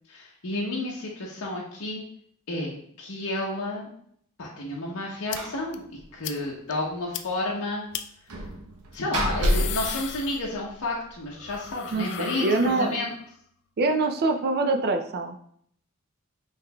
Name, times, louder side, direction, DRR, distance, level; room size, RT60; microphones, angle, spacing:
voice 1, 0.1-2.0 2.5-3.9 4.4-5.8 6.1-7.9 8.9-13.1, left 2 dB, 70° left, -3 dB, 0.8 m, -31 dB
sound 1, 5.3-5.4 5.7-5.8 6.2-6.4 6.7-6.8 7.1-7.2 7.9-8.0 9.2-10.8 11.1-13.3, left 10 dB, 55° left, 0.3 m, -36 dB
Slam, 5.4-5.7 6.0-6.1 6.4-6.5 8.3-10.9, equal, 90° right, 0.7 m, -29 dB
voice 2, 11.9-13.0 13.8-15.4, right 3 dB, 45° right, 6 dB, 0.4 m, -24 dB
5.7 x 3.2 x 2.2 m, 0.65 s
head